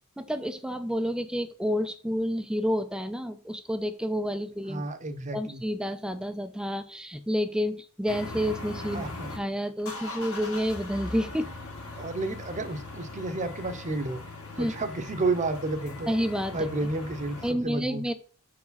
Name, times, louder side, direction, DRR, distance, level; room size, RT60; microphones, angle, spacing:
voice 1, 0.2-4.8 5.3-9.0 9.4-11.5 14.6-14.7 16.1-16.6 17.4-18.1, equal, 5° right, 10 dB, 0.4 m, -29 dB
voice 2, 4.7-5.6 8.9-9.3 12.0-14.2 14.6-16.1 16.5-18.0, right 2 dB, 35° right, 9 dB, 0.8 m, -31 dB
sound 1, 8.1-9.4 9.8-17.5, left 2 dB, 70° left, 2.0 m, -40 dB
6.1 x 4.8 x 4.0 m, 0.40 s
head